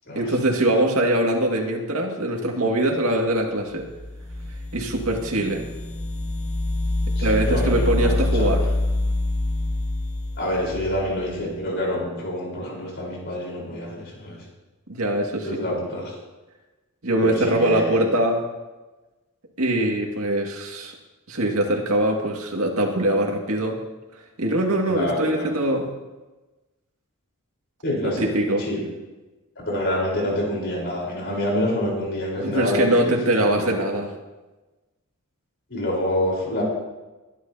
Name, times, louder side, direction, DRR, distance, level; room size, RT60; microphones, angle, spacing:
voice 1, 0.2-3.9 4.7-5.7 7.2-8.6 14.9-15.5 17.0-18.4 19.6-20.9 21.3-23.8 24.4-25.9 28.0-28.6 32.4-34.1, right 1 dB, 75° right, 1 dB, 2.1 m, -22 dB
sound 1, 3.8-11.3, left 2 dB, 30° left, 0.9 m, -26 dB
voice 2, 7.0-8.5 10.4-14.4 15.4-16.1 17.2-18.0 24.9-25.5 27.8-28.3 28.6-28.8 29.6-33.1 33.5-33.8 35.7-36.6, left 1 dB, 55° left, -3 dB, 4.2 m, -27 dB
23.0 x 11.0 x 2.8 m, 1.1 s
head